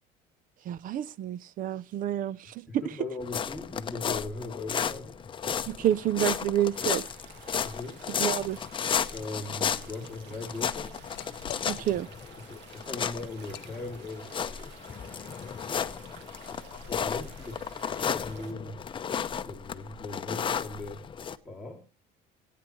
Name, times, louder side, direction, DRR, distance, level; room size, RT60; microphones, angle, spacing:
voice 1, 0.7-2.8 5.7-7.1 8.2-8.6 11.7-12.1, right 11 dB, 50° right, 0.6 m, -29 dB
voice 2, 2.7-5.2 7.6-8.0 9.0-11.0 12.5-14.7 16.5-16.6 16.9-18.8 19.3-21.0 21.4-21.8, left 2 dB, ahead, 2.7 m, -39 dB
sound 1, 3.2-21.4, left 7 dB, 25° left, 0.8 m, -33 dB
sound 2, 6.7-18.5, right 7 dB, 75° right, 2.0 m, -52 dB
Liquid, 9.1-9.7 10.1-12.2 12.7-12.9 13.4-13.7, left 18 dB, 70° left, 0.6 m, -46 dB
21.0 x 9.5 x 3.1 m
cardioid pair, 130°, 19 cm